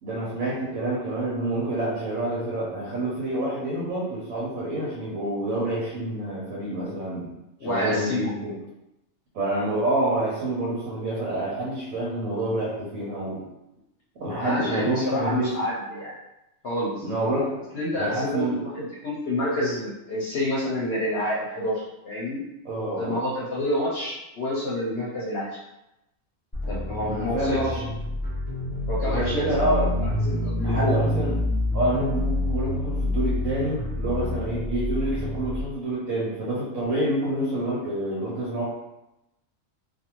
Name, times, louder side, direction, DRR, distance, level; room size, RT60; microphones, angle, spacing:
voice 1, 0.0-7.3 7.6-8.6 9.3-13.4 14.2-15.5 17.0-17.5 18.0-18.6 22.6-23.2 27.0-27.9 29.0-29.9 30.6-31.3 31.7-38.6, right 1 dB, 85° right, -6 dB, 1.1 m, -27 dB
voice 2, 7.6-8.3 14.4-16.1 16.6-17.1 17.7-22.4 23.0-25.6 26.7-27.8 28.9-31.0, left 1 dB, 60° left, -7 dB, 0.8 m, -28 dB
sound 1, 26.5-35.6, left 1 dB, 10° left, 0.5 m, -27 dB
2.5 x 2.4 x 2.9 m, 0.91 s
omnidirectional pair, 1.4 m